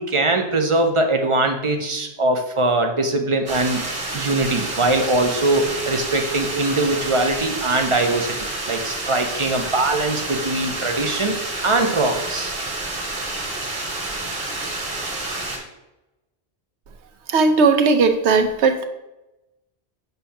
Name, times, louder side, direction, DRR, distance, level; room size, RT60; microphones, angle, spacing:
voice 1, 0.0-3.8 4.1-8.4 8.7-11.4 11.6-12.5, right 2 dB, 40° right, 5 dB, 0.5 m, -21 dB
sound 1, 3.5-15.6, right 2 dB, 55° right, 1.4 m, -29 dB
voice 2, 17.3-18.8, right 4 dB, 85° right, 7 dB, 1.0 m, -17 dB
6.7 x 2.7 x 5.6 m, 0.96 s
omnidirectional pair, 1.1 m